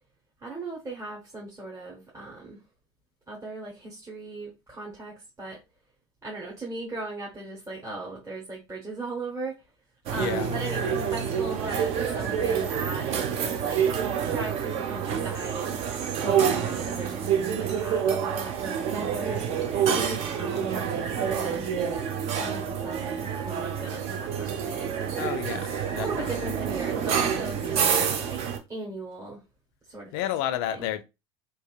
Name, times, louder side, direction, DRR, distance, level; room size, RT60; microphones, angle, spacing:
voice 1, 0.4-2.6 3.3-5.6 6.2-9.6 10.1-13.8 14.3-15.8 16.2-21.7 22.3-25.4 26.0-28.4 28.7-29.4 29.9-30.1 30.7-30.9, right 2 dB, 20° right, 0.9 m, -38 dB
voice 2, 10.1-10.5 25.1-25.7 25.9-26.5 30.1-31.0, left 11 dB, 60° left, 0.4 m, -31 dB
sound 1, 10.1-28.6, right 7 dB, 45° right, 0.5 m, -28 dB
2.8 x 2.4 x 2.3 m
hypercardioid pair, 75°, 14 cm